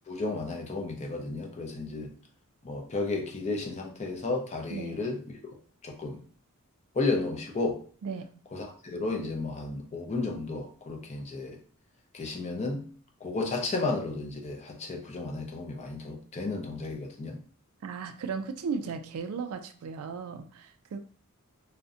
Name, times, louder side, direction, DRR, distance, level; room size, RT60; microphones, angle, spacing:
voice 1, 0.1-2.1 2.6-5.6 5.8-6.2 6.9-7.8 8.5-11.6 12.1-12.9 13.2-17.4, left 3 dB, 30° left, 0.4 m, -33 dB
voice 2, 17.8-21.0, right 5 dB, 70° right, 0.3 m, -36 dB
2.5 x 2.1 x 2.4 m
head